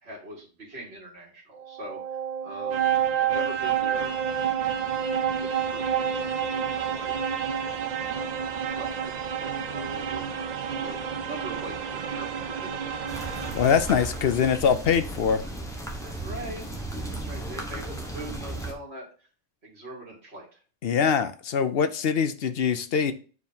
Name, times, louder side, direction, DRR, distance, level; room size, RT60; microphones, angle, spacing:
voice 1, 0.0-2.0 2.4-4.6 5.4-7.2 8.1-10.3 10.8-13.1 16.0-16.8 17.1-19.3 19.6-20.6, right 1 dB, 65° right, -2 dB, 2.4 m, -42 dB
sound 1, 1.5-14.4, right 8 dB, 50° right, 0.6 m, -29 dB
sound 2, 13.1-18.7, right 2 dB, 5° left, 1.1 m, -35 dB
voice 2, 13.5-15.4 20.8-23.1, left 7 dB, 65° left, 11 dB, 0.8 m, -23 dB
7.5 x 4.7 x 2.8 m, 0.37 s
omnidirectional pair, 1.1 m